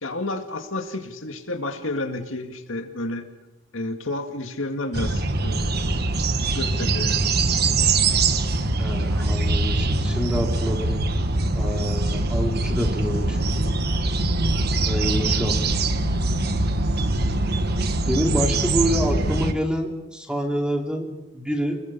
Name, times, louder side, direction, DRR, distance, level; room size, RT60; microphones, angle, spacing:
voice 1, 0.0-3.3 3.7-5.8 6.5-7.3, left 2 dB, 75° left, 5 dB, 2.2 m, -30 dB
sound 1, 4.9-19.5, right 2 dB, 50° right, 1.4 m, -23 dB
voice 2, 8.8-10.9 11.5-13.5 14.8-15.6 18.1-21.8, equal, 5° right, 2 dB, 2.9 m, -27 dB
30.0 x 21.5 x 5.5 m, 0.98 s
head